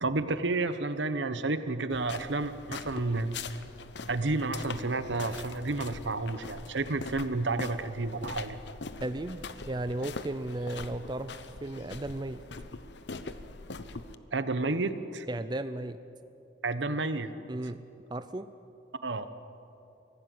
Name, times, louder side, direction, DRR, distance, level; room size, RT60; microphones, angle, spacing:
voice 1, 0.0-3.4 4.1-8.6 14.3-15.3 16.6-17.3 19.0-19.3, right 3 dB, 75° right, 11 dB, 1.1 m, -31 dB
sound 1, 1.9-14.1, left 4 dB, 65° left, 0.9 m, -43 dB
voice 2, 9.0-11.3 11.6-12.4 15.3-16.0 17.5-18.5, right 2 dB, 25° right, 11 dB, 0.5 m, -35 dB
24.5 x 16.5 x 7.9 m, 2.8 s
head